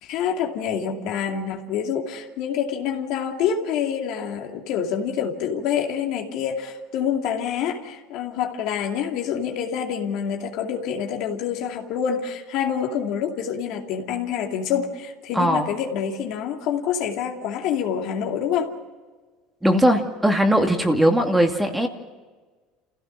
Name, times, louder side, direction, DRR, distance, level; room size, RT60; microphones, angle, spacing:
voice 1, 0.0-18.7, left 8 dB, 65° left, 2 dB, 2.5 m, -27 dB
voice 2, 15.3-15.7 19.6-21.9, equal, 5° right, 4 dB, 2.3 m, -19 dB
28.5 x 16.0 x 6.2 m, 1.4 s
supercardioid pair, 95°, 0 cm